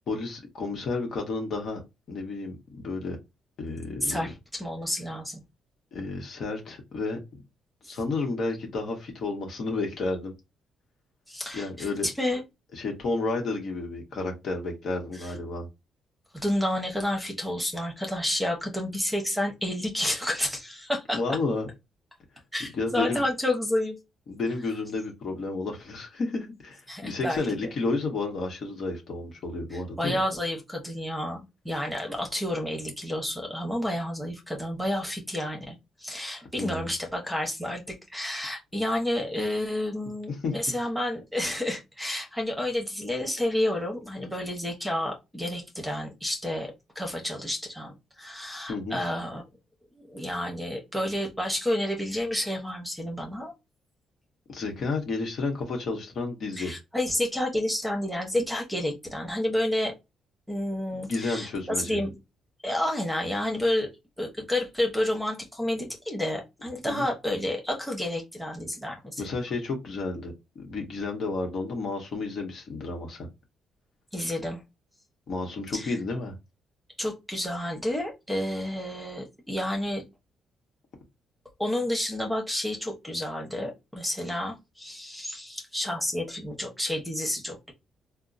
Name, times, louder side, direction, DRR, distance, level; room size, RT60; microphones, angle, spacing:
voice 1, 0.1-1.8 2.1-3.2 3.6-4.3 5.9-7.2 7.8-10.3 11.5-12.1 12.7-15.7 21.1-21.7 22.7-23.2 24.3-30.2 36.6-36.9 40.4-40.5 48.7-49.0 54.5-56.8 61.1-62.0 66.8-67.1 69.2-73.3 75.3-76.3, left 3 dB, 60° left, 1.1 m, -31 dB
voice 2, 4.0-5.4 7.8-8.0 11.3-12.4 15.1-15.3 16.3-21.2 22.5-24.0 26.9-27.5 29.7-49.4 49.9-53.5 56.6-59.9 60.5-62.1 62.6-63.9 64.2-69.2 74.1-74.6 75.7-75.9 77.0-80.0 81.6-87.7, left 1 dB, ahead, 1.1 m, -30 dB
3.5 x 2.1 x 2.6 m
cardioid pair, 90°, 0 cm